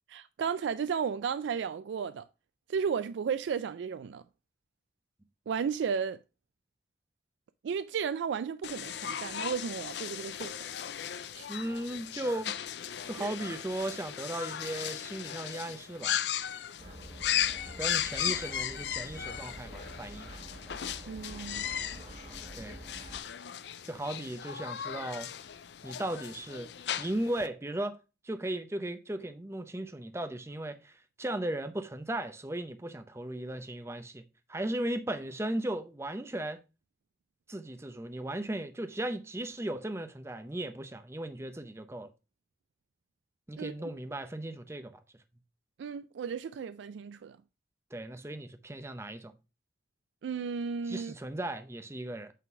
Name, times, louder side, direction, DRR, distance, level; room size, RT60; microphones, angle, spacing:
voice 1, 0.1-2.2 2.7-4.2 5.5-6.2 7.6-10.5 11.3-11.5 13.2-13.3 18.3-18.4 21.1-21.7 43.6-43.7 45.8-47.4 50.2-51.1, right 6 dB, 90° right, 0.3 m, -34 dB
sound 1, 8.6-27.5, left 10 dB, 70° left, 0.5 m, -37 dB
voice 2, 11.5-12.6 13.0-16.2 17.8-20.3 22.6-22.8 23.8-25.3 25.8-26.7 27.0-28.0 28.2-34.2 34.5-36.6 37.5-42.1 43.5-44.9 47.9-49.3 50.9-52.3, right 1 dB, 15° right, 0.6 m, -36 dB
sound 2, 16.8-23.2, right 1 dB, 35° right, 1.4 m, -47 dB
8.3 x 3.8 x 4.6 m
head